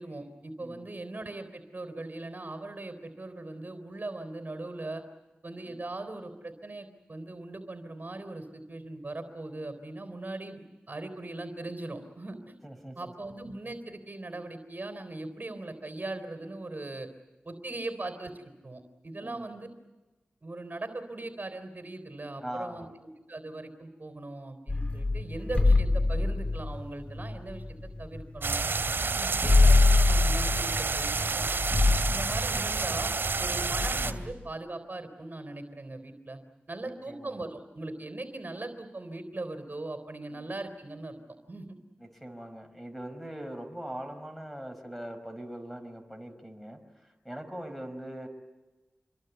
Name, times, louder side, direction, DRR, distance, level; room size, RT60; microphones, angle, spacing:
voice 1, 0.0-5.0 5.4-12.5 13.0-17.1 17.4-19.7 20.4-27.6 28.0-28.6 29.2-31.5 32.1-33.1 33.4-36.4 36.7-41.2 41.5-41.8, right 2 dB, 50° right, 8 dB, 3.9 m, -40 dB
voice 2, 12.6-13.1 17.7-17.8 19.2-19.6 22.4-22.9 24.8-25.1 28.9-29.3 36.8-37.4 40.3-40.6 42.0-48.3, right 1 dB, 5° left, 7 dB, 5.4 m, -42 dB
sound 1, 24.7-28.6 28.8-28.9 29.2-34.3, left 3 dB, 30° left, 1.8 m, -25 dB
sound 2, 28.4-34.1, right 4 dB, 65° right, 2.7 m, -29 dB
28.0 x 22.5 x 8.3 m, 1.1 s
cardioid pair, 45°, 4 cm